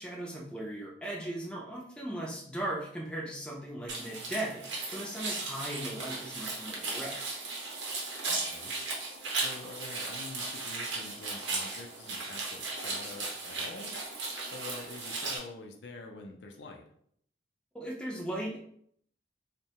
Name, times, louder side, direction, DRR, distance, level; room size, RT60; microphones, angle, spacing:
voice 1, 0.0-7.4 17.7-18.6, right 1 dB, 5° left, -3 dB, 0.5 m, -38 dB
sound 1, 3.9-15.4, right 3 dB, 85° right, 0.7 m, -36 dB
voice 2, 8.3-8.7 9.3-13.9 14.5-16.8, left 3 dB, 70° left, 2 dB, 0.4 m, -46 dB
2.7 x 2.1 x 2.8 m, 0.65 s
head